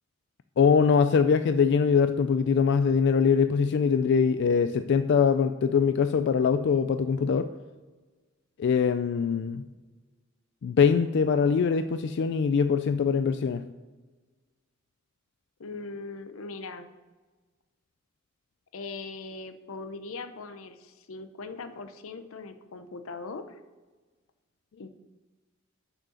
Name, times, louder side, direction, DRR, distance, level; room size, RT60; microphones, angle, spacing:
voice 1, 0.6-7.5 8.6-9.6 10.6-13.6, left 6 dB, 55° left, 10 dB, 0.3 m, -23 dB
voice 2, 15.6-16.9 18.7-23.6 24.8-24.9, left 3 dB, 85° left, 9 dB, 0.7 m, -40 dB
6.4 x 6.4 x 6.3 m, 1.3 s
head